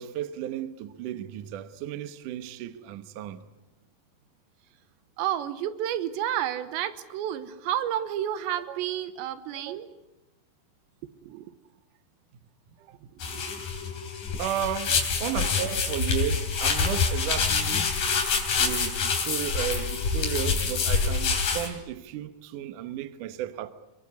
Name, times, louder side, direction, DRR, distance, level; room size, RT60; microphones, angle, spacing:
voice 1, 0.0-3.4 12.9-13.0 14.4-18.0 18.6-23.7, right 11 dB, 65° right, 2.1 m, -34 dB
voice 2, 5.2-9.9 11.2-11.5 13.3-13.4, right 11 dB, 85° right, 3.4 m, -30 dB
sound 1, 13.2-21.7, left 5 dB, 50° left, 4.7 m, -26 dB
24.0 x 22.5 x 9.5 m
omnidirectional pair, 5.0 m